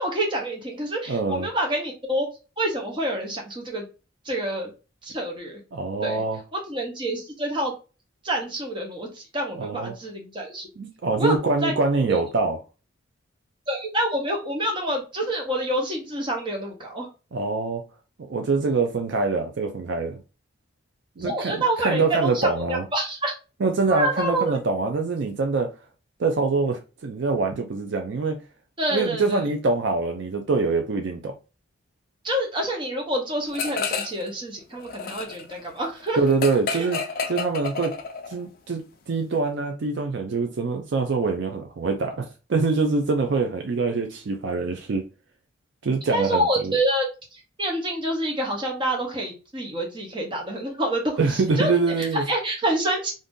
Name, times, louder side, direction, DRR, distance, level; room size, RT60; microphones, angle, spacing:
voice 1, 0.0-2.3 2.6-3.9 4.2-4.7 5.0-5.6 6.0-6.2 6.5-7.7 8.2-10.7 11.2-11.3 11.6-11.7 12.1-12.2 13.7-17.1 21.2-23.3 23.9-24.5 28.8-29.4 32.2-36.2 36.7-36.9 46.1-53.1, right 1 dB, 25° right, 0.8 m, -27 dB
voice 2, 1.1-1.5 5.7-6.4 9.6-9.9 10.8-12.6 17.3-17.8 18.3-20.2 21.2-22.8 23.6-25.7 26.2-28.4 28.9-31.3 36.2-37.0 37.3-37.9 38.3-38.8 39.1-45.1 45.8-46.8 51.2-52.3, right 3 dB, 60° right, 0.4 m, -24 dB
sound 1, 33.5-34.3 34.6-38.4, left 5 dB, 45° left, 0.4 m, -30 dB
2.6 x 2.5 x 3.6 m
head